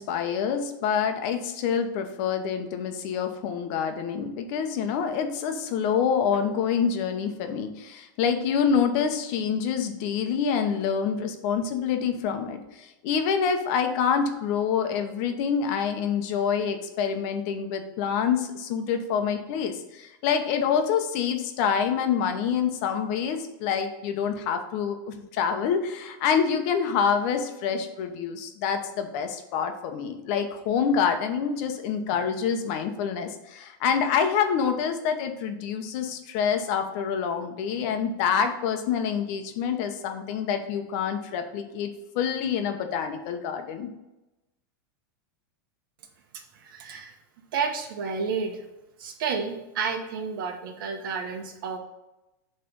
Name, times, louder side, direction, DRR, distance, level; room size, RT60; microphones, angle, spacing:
voice 1, 0.0-41.9 42.1-43.9, left 7 dB, 45° left, 6 dB, 0.9 m, -26 dB
voice 2, 46.3-47.1 47.5-48.6 49.0-51.8, right 5 dB, 70° right, 4 dB, 1.3 m, -31 dB
7.8 x 3.4 x 5.3 m, 0.97 s
supercardioid pair, 155°, 12 cm